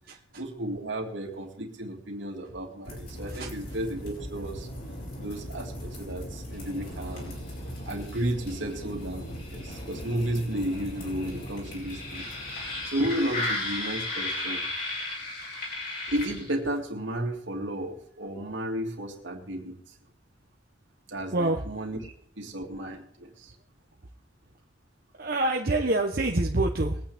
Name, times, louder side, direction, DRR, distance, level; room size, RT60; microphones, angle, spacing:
voice 1, 0.3-4.7 5.2-7.3 7.8-12.3 12.5-14.6 15.8-19.8 21.1-23.5, right 1 dB, 70° right, 1 dB, 2.6 m, -33 dB
sound 1, 2.9-16.8, left 1 dB, 50° left, 5.1 m, -36 dB
voice 2, 21.3-21.6 25.2-27.0, right 2 dB, 50° right, 2 dB, 0.9 m, -26 dB
22.5 x 8.8 x 3.5 m, 0.63 s
head